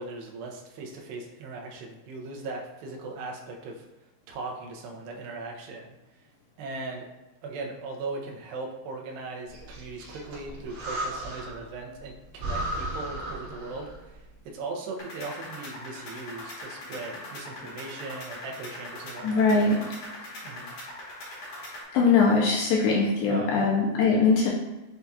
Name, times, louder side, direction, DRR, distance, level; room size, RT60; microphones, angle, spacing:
voice 1, 0.0-3.8 4.3-6.0 6.6-7.1 7.4-19.5 20.2-20.8 23.3-23.8, right 3 dB, 80° right, 0 dB, 2.3 m, -38 dB
Breathing, 9.5-11.7 12.0-12.1 12.4-14.1, right 1 dB, 60° right, 1.9 m, -35 dB
sound 1, 15.0-21.8, left 1 dB, 60° left, 2.0 m, -41 dB
voice 2, 19.2-19.8 21.9-24.5, left 4 dB, 80° left, -2 dB, 2.1 m, -21 dB
7.6 x 2.7 x 2.3 m, 1.1 s
omnidirectional pair, 4.5 m